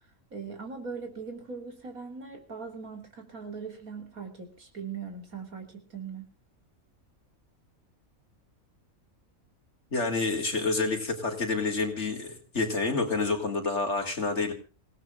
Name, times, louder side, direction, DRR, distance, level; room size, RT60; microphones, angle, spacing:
voice 1, 0.3-6.3, right 5 dB, 75° right, 5 dB, 3.9 m, -40 dB
voice 2, 9.9-14.5, left 3 dB, 50° left, 3 dB, 3.4 m, -28 dB
26.0 x 17.5 x 2.5 m, 0.33 s
omnidirectional pair, 1.5 m